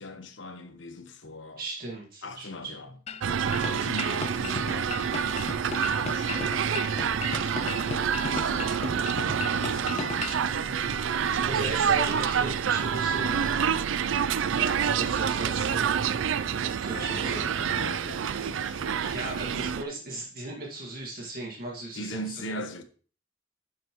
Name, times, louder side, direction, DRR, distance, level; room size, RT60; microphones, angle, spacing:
voice 1, 0.0-1.6 2.2-3.0 3.5-5.1 5.6-11.1 16.9-19.7 21.9-22.8, left 1 dB, 70° left, 1.2 m, -41 dB
voice 2, 1.6-2.7 11.3-13.4 14.5-16.1 16.8-17.5 19.0-22.6, right 2 dB, 50° right, 1.9 m, -37 dB
sound 1, 3.1-10.4, left 6 dB, 35° left, 0.3 m, -37 dB
sound 2, 3.2-19.8, right 7 dB, 75° right, 0.4 m, -27 dB
11.0 x 7.2 x 3.1 m
head